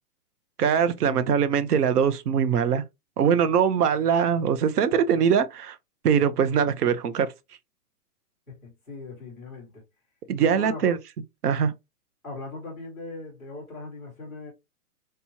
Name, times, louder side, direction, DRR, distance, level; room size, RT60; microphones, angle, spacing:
voice 1, 0.6-2.8 3.2-5.8 6.0-7.3 10.3-11.0 11.4-11.7, right 7 dB, 80° right, 0.8 m, -22 dB
voice 2, 8.5-9.8 10.4-11.0 12.2-14.5, left 3 dB, ahead, 0.5 m, -39 dB
3.4 x 3.0 x 2.8 m
hypercardioid pair, 170°, 46 cm